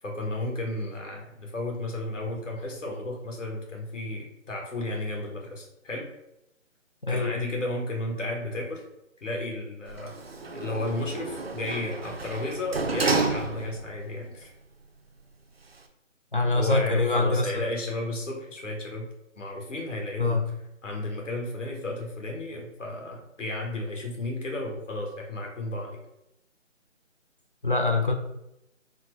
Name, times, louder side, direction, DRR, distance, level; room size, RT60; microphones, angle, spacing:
voice 1, 0.0-6.1 7.1-8.8 9.2-10.1 10.5-14.5 16.5-19.1 19.4-20.4 20.8-26.0, left 2 dB, 70° left, 0 dB, 1.4 m, -33 dB
voice 2, 7.0-7.3 16.3-17.5 20.2-20.4 27.6-28.1, left 3 dB, 40° left, 3 dB, 0.5 m, -24 dB
Sliding door, 9.9-14.0 14.4-14.5, right 3 dB, 55° right, 0.4 m, -30 dB
4.3 x 2.1 x 4.4 m, 0.85 s
hypercardioid pair, 180°, 39 cm